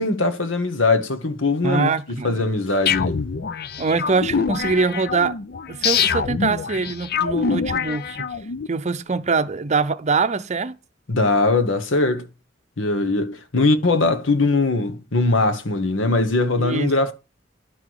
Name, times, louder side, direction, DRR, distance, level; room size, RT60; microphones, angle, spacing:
voice 1, 0.0-1.9 2.2-3.2 11.1-12.3 12.8-17.1, left 3 dB, 75° left, 1.4 m, -20 dB
voice 2, 1.6-2.5 3.8-5.4 5.7-8.2 8.7-10.8 16.6-16.9, right 4 dB, 35° right, 0.6 m, -23 dB
sound 1, 2.9-8.7, left 6 dB, 55° left, 0.6 m, -25 dB
11.5 x 6.1 x 4.7 m
head